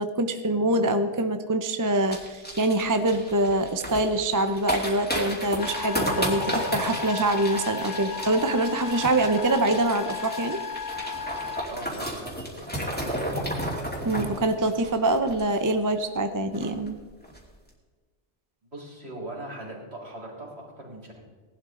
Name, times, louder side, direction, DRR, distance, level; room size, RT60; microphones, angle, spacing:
voice 1, 0.0-10.6 14.0-17.0, right 2 dB, 20° right, 7 dB, 0.6 m, -25 dB
sound 1, 2.1-15.9 16.2-16.3 16.5-16.9 17.2-17.4, equal, 10° left, 2.7 m, -33 dB
sound 2, 5.6-11.7, left 5 dB, 45° left, 0.8 m, -34 dB
voice 2, 11.7-13.5 18.7-21.3, right 1 dB, 60° right, -3 dB, 3.8 m, -40 dB
18.5 x 11.5 x 3.8 m, 1.4 s
omnidirectional pair, 1.2 m